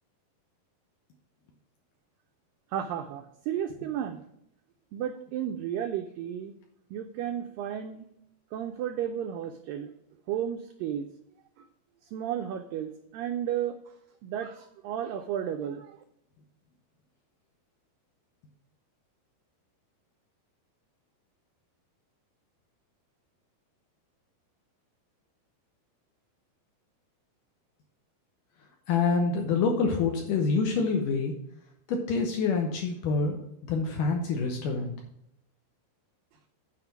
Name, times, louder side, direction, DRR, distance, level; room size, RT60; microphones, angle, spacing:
voice 1, 2.7-4.2 4.9-6.5 6.9-8.1 8.5-9.9 10.3-11.1 12.1-13.8 14.2-16.0, right 10 dB, 80° right, 6 dB, 2.0 m, -33 dB
voice 2, 28.9-31.3 31.9-34.9, left 4 dB, 70° left, 3 dB, 2.2 m, -27 dB
9.2 x 5.0 x 6.0 m, 0.78 s
omnidirectional pair, 4.6 m